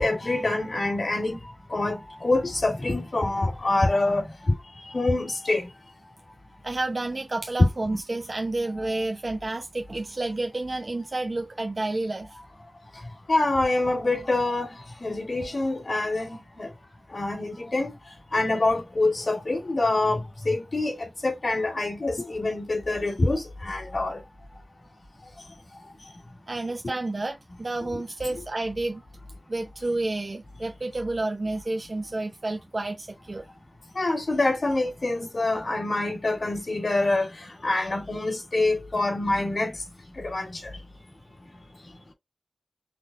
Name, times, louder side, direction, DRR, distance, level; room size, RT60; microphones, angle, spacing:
voice 1, 0.0-1.4 1.7-4.5 4.9-5.7 7.6-7.7 13.3-14.7 15.0-16.7 17.1-17.9 18.3-24.2 34.0-37.3 37.6-39.8 40.2-40.7, left 2 dB, 75° left, 2.3 m, -25 dB
voice 2, 6.6-12.4 26.5-29.0 29.5-33.4, right 2 dB, 65° right, 0.9 m, -30 dB
5.9 x 3.5 x 2.4 m
wide cardioid pair, 45°, 0 cm